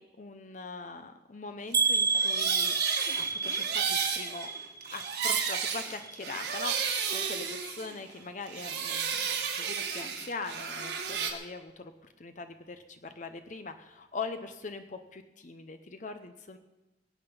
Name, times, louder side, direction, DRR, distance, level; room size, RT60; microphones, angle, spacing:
voice 1, 0.0-4.5 4.9-11.9 12.2-16.6, left 4 dB, 45° left, 8 dB, 0.7 m, -42 dB
sound 1, 1.7-5.7 6.0-6.6 7.1-7.2 7.6-7.7, right 4 dB, 20° right, 1.5 m, -30 dB
sound 2, 2.0-8.2 8.5-11.3, right 6 dB, 65° right, 1.8 m, -33 dB
22.0 x 8.8 x 5.4 m, 1.0 s
head